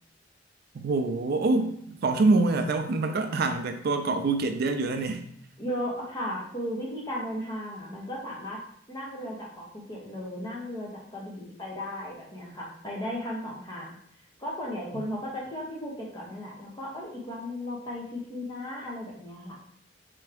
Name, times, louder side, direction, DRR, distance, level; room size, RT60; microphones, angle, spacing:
voice 1, 0.7-5.2 14.9-15.0, right 3 dB, 55° right, 7 dB, 0.4 m, -25 dB
voice 2, 5.6-8.6 8.9-13.9 14.4-19.6, equal, 20° left, -4 dB, 1.1 m, -35 dB
4.4 x 3.4 x 3.4 m, 0.69 s
head